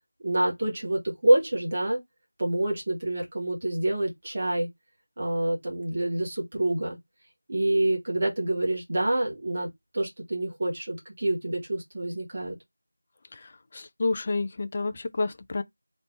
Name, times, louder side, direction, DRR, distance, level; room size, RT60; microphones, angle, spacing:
voice 1, 0.2-2.0 2.4-4.7 5.2-7.0 7.5-9.7 9.9-12.6, right 1 dB, 30° right, 1.5 m, -27 dB
voice 2, 13.3-15.6, left 3 dB, 25° left, 0.4 m, -30 dB
3.4 x 2.9 x 3.6 m
figure-of-eight pair, 170°, 0 cm